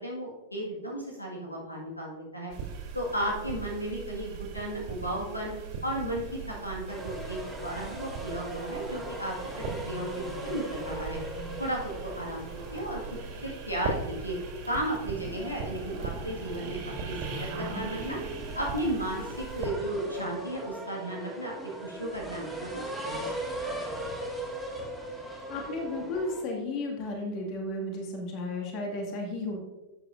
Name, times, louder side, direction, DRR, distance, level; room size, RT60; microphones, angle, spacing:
voice 1, 0.0-2.5 2.9-5.5 5.8-9.4 9.8-11.2 11.6-13.0 13.4-14.4 14.7-18.2 18.5-21.5 21.8-23.8, right 1 dB, 85° left, -2 dB, 1.9 m, -34 dB
sound 1, 2.5-19.7, right 5 dB, 45° right, 2.1 m, -39 dB
sound 2, 6.9-26.4, right 1 dB, ahead, 2.0 m, -40 dB
voice 2, 25.5-29.6, left 2 dB, 40° left, 1 dB, 2.1 m, -33 dB
12.0 x 8.2 x 2.6 m, 1.1 s
figure-of-eight pair, 90°, 0 cm